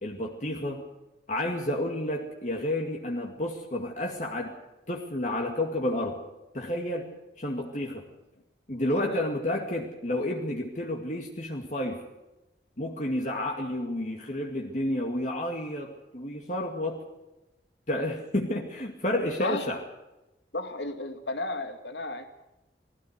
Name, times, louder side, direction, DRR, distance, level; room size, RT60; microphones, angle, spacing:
voice 1, 0.0-0.8 1.3-4.5 4.9-6.2 6.5-7.1 7.4-8.0 8.7-12.0 12.8-17.0 17.9-19.8, left 1 dB, 45° left, 0 dB, 2.3 m, -30 dB
voice 2, 8.8-9.2 19.4-19.7 20.5-22.3, left 2 dB, 80° left, 6 dB, 2.4 m, -33 dB
20.5 x 16.0 x 8.3 m, 0.97 s
head